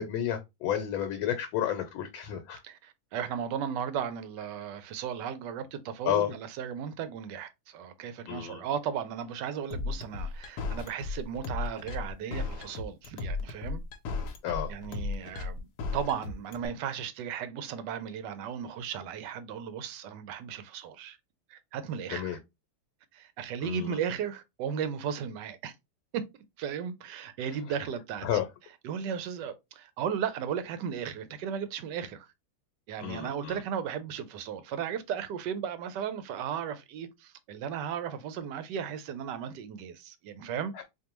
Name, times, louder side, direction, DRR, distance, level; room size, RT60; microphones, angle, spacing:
voice 1, 0.0-2.6 6.0-6.3 8.3-8.6 14.4-14.7 22.1-22.4 23.6-24.0 28.2-28.5 33.0-33.6 40.7-40.8, left 10 dB, 85° left, 1.4 m, -31 dB
voice 2, 2.6-13.8 14.7-15.7 15.9-21.2 21.5-22.4 23.1-25.7 26.1-26.2 26.6-28.3 28.8-32.3 32.9-40.7, right 8 dB, 75° right, 1.1 m, -35 dB
sound 1, 9.7-16.7, left 3 dB, 65° left, 1.1 m, -34 dB
4.4 x 2.6 x 2.9 m
omnidirectional pair, 2.2 m